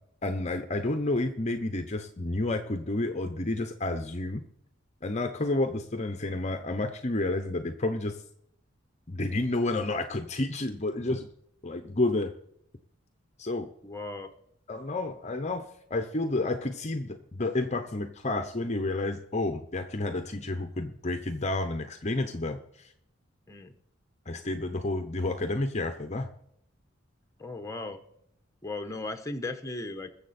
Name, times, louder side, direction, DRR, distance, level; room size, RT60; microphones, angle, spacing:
voice 1, 0.2-4.4 5.0-8.2 9.1-11.3 11.6-12.3 13.4-13.7 14.7-22.9 24.3-26.3, left 2 dB, 35° left, 8 dB, 0.9 m, -30 dB
voice 2, 13.8-14.3 23.5-23.7 27.4-28.0 28.6-30.1, left 2 dB, 15° left, 6 dB, 1.1 m, -36 dB
21.5 x 7.3 x 4.3 m, 0.72 s
head